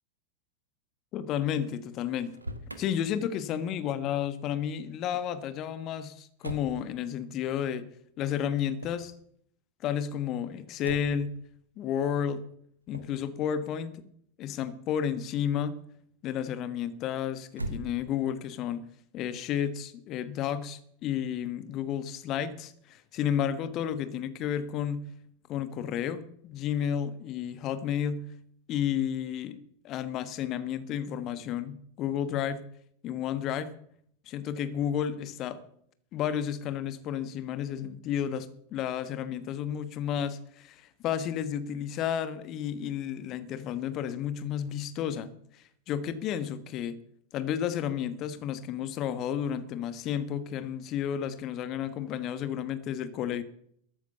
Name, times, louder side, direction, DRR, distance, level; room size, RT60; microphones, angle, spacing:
voice 1, 1.1-2.3 2.8-7.9 8.2-9.1 9.8-11.3 11.8-12.5 12.9-14.0 14.4-15.8 16.2-18.9 19.1-25.1 25.5-28.3 28.7-32.6 33.0-33.7 34.3-35.6 36.1-47.0 47.3-53.4, left 9 dB, 35° left, 14 dB, 1.2 m, -32 dB
Motor vehicle (road), 2.1-2.8 6.4-6.8 8.7-9.1 10.8-11.3 12.9-13.2 17.5-18.3, right 1 dB, 85° right, 1.4 m, -39 dB
13.5 x 10.0 x 6.8 m, 0.69 s
figure-of-eight pair, 90°, 0 cm